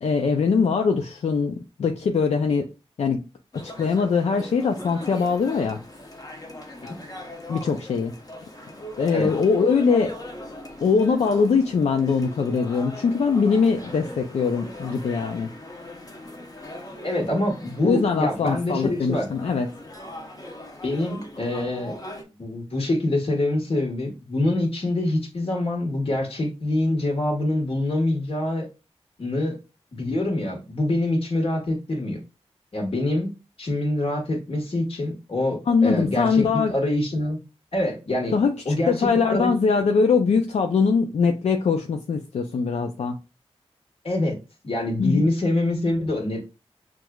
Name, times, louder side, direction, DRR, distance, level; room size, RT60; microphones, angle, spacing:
voice 1, 0.0-2.7 3.0-3.2 3.5-5.8 7.5-8.1 9.0-10.1 10.8-15.5 17.8-19.7 35.7-36.7 38.3-43.2 45.0-45.2, left 5 dB, 85° left, 0.4 m, -22 dB
sound 1, 3.5-22.2, left 1 dB, 35° left, 0.7 m, -40 dB
voice 2, 17.0-19.3 20.8-21.9 22.4-28.7 29.2-29.6 29.9-32.2 32.7-33.3 33.6-37.4 37.7-38.3 38.6-39.5 44.0-44.4 44.6-46.4, left 1 dB, 60° left, 1.4 m, -25 dB
6.0 x 2.4 x 2.3 m
wide cardioid pair, 75°, 11 cm